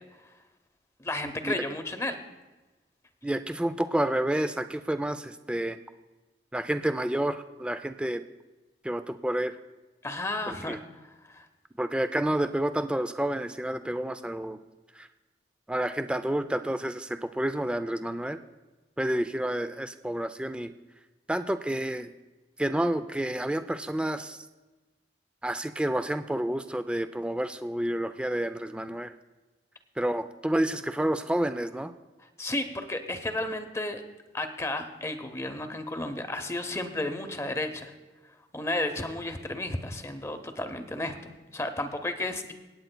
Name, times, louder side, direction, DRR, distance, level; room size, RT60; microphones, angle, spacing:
voice 1, 1.0-2.2 10.0-10.8 11.2-11.4 32.4-34.0 34.3-37.9 38.5-42.5, left 2 dB, 15° left, 7 dB, 0.7 m, -33 dB
voice 2, 3.2-5.8 6.5-8.2 8.8-9.6 10.5-10.8 11.8-14.6 15.0-15.1 15.7-18.4 19.0-20.7 21.3-22.1 22.6-24.4 25.4-29.1 30.0-31.9, right 1 dB, 5° right, 10 dB, 0.3 m, -29 dB
25.5 x 9.0 x 2.2 m, 1.2 s
head